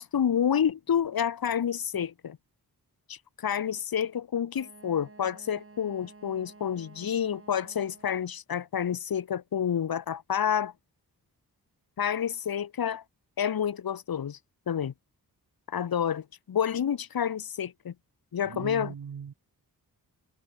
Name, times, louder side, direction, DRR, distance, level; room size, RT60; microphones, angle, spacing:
voice 1, 0.0-2.4 3.1-10.7 12.0-13.0 13.4-14.4 14.7-14.9 15.7-17.9 18.3-18.9, left 8 dB, 65° left, 1.2 m, -29 dB
Wind instrument woodwind instrument, 4.5-8.3, right 3 dB, 35° right, 3.8 m, -52 dB
voice 2, 18.5-19.3, right 7 dB, 65° right, 2.2 m, -38 dB
cardioid pair, 65°, 39 cm